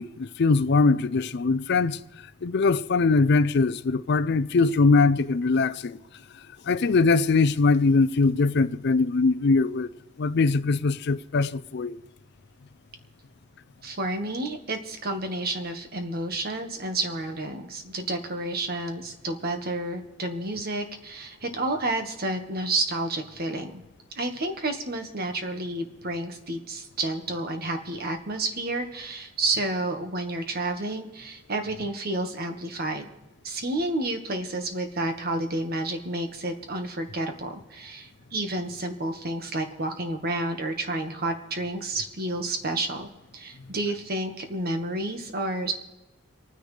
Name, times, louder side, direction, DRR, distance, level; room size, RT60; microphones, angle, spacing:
voice 1, 0.0-2.0 2.4-6.0 6.7-9.9 10.2-12.0, left 4 dB, 55° left, 0.5 m, -22 dB
voice 2, 13.8-23.8 24.1-33.1 33.4-45.7, right 2 dB, 50° right, 1.6 m, -30 dB
27.5 x 9.9 x 3.3 m
head